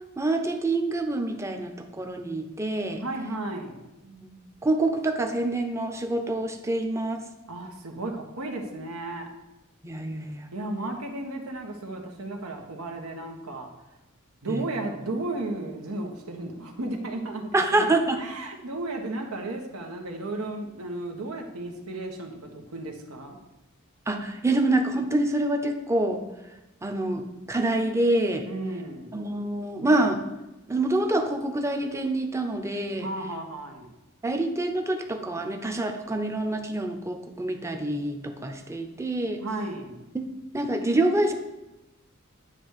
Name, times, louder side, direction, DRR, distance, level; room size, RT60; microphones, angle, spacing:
voice 1, 0.2-3.0 4.0-4.3 4.6-7.2 9.8-10.5 14.5-14.6 17.5-18.2 24.1-26.2 26.8-28.4 29.1-30.2 30.7-33.1 34.2-39.4 40.1-40.3 40.5-41.3, right 2 dB, 15° right, 5 dB, 0.7 m, -26 dB
voice 2, 3.0-3.8 7.5-9.3 10.5-13.7 14.4-17.9 18.2-23.4 28.4-29.1 33.0-33.9 39.4-40.0, right 2 dB, 90° right, 2 dB, 1.3 m, -34 dB
9.8 x 3.4 x 6.5 m, 0.99 s
head